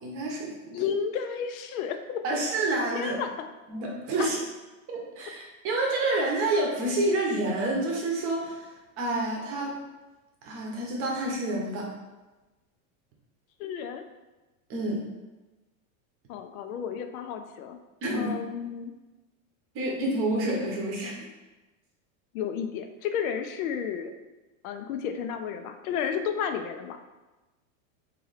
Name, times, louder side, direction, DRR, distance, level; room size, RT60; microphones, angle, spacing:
voice 1, 0.0-0.8 2.2-3.1 3.7-4.4 4.9-9.8 10.4-11.9 14.7-15.0 18.0-18.3 19.7-21.3, right 2 dB, 30° right, -1 dB, 0.8 m, -28 dB
voice 2, 0.7-2.2 2.9-3.3 4.2-4.3 13.6-14.0 16.3-17.8 18.1-18.9 22.3-24.3 24.6-27.0, left 7 dB, 75° left, 7 dB, 0.5 m, -32 dB
3.1 x 2.8 x 3.9 m, 1.1 s
supercardioid pair, 160°, 42 cm